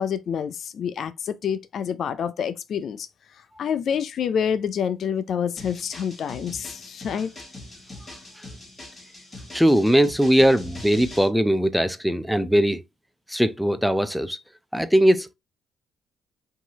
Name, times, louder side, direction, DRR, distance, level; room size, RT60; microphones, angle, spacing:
voice 1, 0.0-3.1 3.6-7.3, left 7 dB, 60° left, 0.4 m, -27 dB
sound 1, 5.6-11.3, left 2 dB, 20° left, 2.5 m, -42 dB
voice 2, 9.5-12.8 13.3-14.4 14.7-15.3, equal, ahead, 0.4 m, -20 dB
4.5 x 2.7 x 2.9 m
cardioid pair, 90°, 0 cm